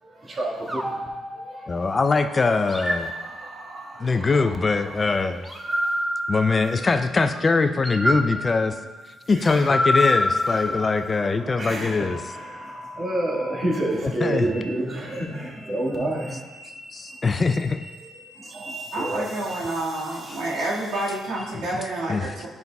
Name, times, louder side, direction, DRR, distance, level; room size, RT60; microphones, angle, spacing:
voice 1, 0.0-2.0 2.9-5.0 5.8-5.9 9.3-9.8 10.2-16.5 18.3-20.4, right 1 dB, 40° right, -2 dB, 1.6 m, -31 dB
sound 1, 0.7-2.0 2.7-4.0 5.4-7.2 7.8-11.3, left 1 dB, 10° right, 0.8 m, -27 dB
voice 2, 1.7-3.1 4.0-5.5 6.3-8.8 9.1-12.2 14.2-14.5 16.9-17.8 20.3-20.4 21.7-21.8 22.1-22.5, left 4 dB, 30° left, 9 dB, 0.4 m, -22 dB
sound 2, 14.3-21.5, right 2 dB, 60° right, 1.0 m, -43 dB
voice 3, 18.9-22.5, right 1 dB, 90° right, -5 dB, 1.8 m, -29 dB
10.5 x 5.3 x 2.3 m, 1.2 s
cardioid pair, 90°, 0 cm